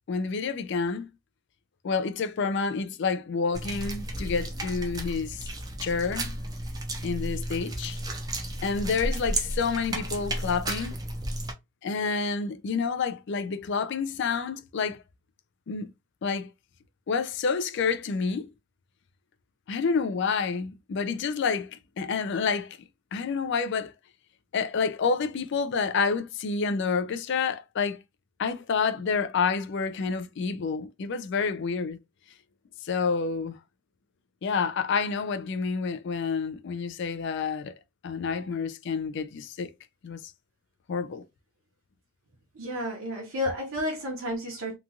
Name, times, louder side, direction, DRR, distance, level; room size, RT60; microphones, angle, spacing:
voice 1, 0.1-1.1 1.8-5.5 5.8-6.4 7.0-8.0 8.6-11.0 11.8-15.0 15.7-15.9 16.2-16.5 17.1-18.5 19.7-22.8 23.1-23.9 24.5-28.0 28.4-32.0 32.8-33.6 34.4-37.7 38.0-39.7 40.0-40.2 40.9-41.2, left 5 dB, 55° left, 0.4 m, -28 dB
sound 1, 3.5-11.5, right 1 dB, 20° right, 0.4 m, -33 dB
voice 2, 42.5-44.8, left 1 dB, 65° right, 0.8 m, -31 dB
2.9 x 2.3 x 2.6 m
head